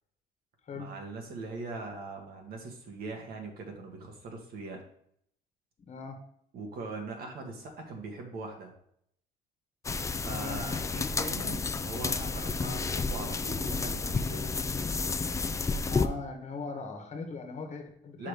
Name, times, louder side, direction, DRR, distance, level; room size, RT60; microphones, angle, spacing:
voice 1, 0.7-4.8 6.5-8.7 10.2-14.6 18.2-18.3, right 3 dB, 65° right, 2 dB, 1.7 m, -41 dB
voice 2, 5.9-6.2 10.3-10.6 15.9-18.3, left 4 dB, 40° left, 5 dB, 1.5 m, -39 dB
sound 1, 9.8-16.1, left 4 dB, 20° left, 0.4 m, -31 dB
5.8 x 4.9 x 5.0 m, 0.67 s
cardioid pair, 110°, 17 cm